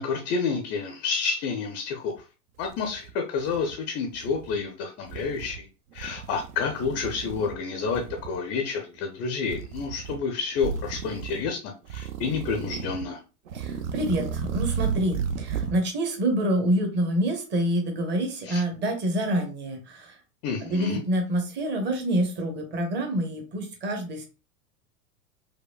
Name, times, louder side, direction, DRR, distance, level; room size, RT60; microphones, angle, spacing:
voice 1, 0.0-2.1 2.6-5.7 5.9-13.2 18.4-18.6 20.4-21.0, left 5 dB, 25° left, 4 dB, 0.4 m, -29 dB
sound 1, 2.2-2.3 2.6-3.8 4.1-4.6 5.0-5.6 5.9-7.6 7.9-8.4 9.4-10.2 10.6-11.5 11.9-13.1 13.5-15.8, right 7 dB, 60° right, 0.6 m, -33 dB
voice 2, 13.5-20.1 20.6-24.2, right 1 dB, 25° right, 4 dB, 0.9 m, -27 dB
4.9 x 2.1 x 2.3 m, 0.32 s
figure-of-eight pair, 85°, 46 cm